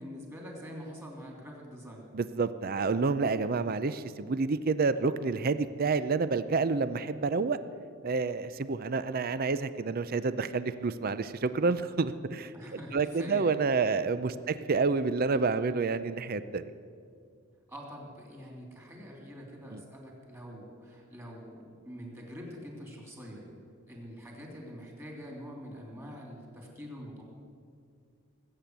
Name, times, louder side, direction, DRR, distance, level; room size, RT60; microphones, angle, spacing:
voice 1, 0.0-2.0 12.5-13.5 14.4-14.6 17.7-23.4 23.9-27.2, equal, 10° right, -1 dB, 3.0 m, -45 dB
voice 2, 2.1-7.6 8.0-12.5 12.9-16.6 19.7-19.8, right 4 dB, 45° right, 13 dB, 0.5 m, -29 dB
19.5 x 8.7 x 8.1 m, 2.2 s
head